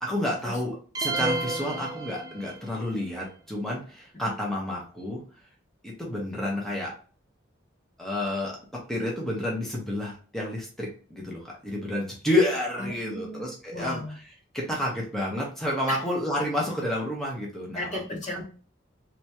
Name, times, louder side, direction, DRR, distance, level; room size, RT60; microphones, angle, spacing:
voice 1, 0.0-0.7 1.0-5.2 5.8-6.9 8.0-8.6 8.9-14.0 14.5-17.9 18.3-18.4, left 1 dB, ahead, -4 dB, 1.0 m, -30 dB
sound 1, 0.9-2.8, right 2 dB, 20° right, 0.5 m, -31 dB
voice 2, 12.8-14.1 15.9-16.0 17.7-18.4, left 1 dB, 35° left, 0 dB, 1.0 m, -35 dB
3.4 x 3.0 x 2.9 m, 0.40 s
head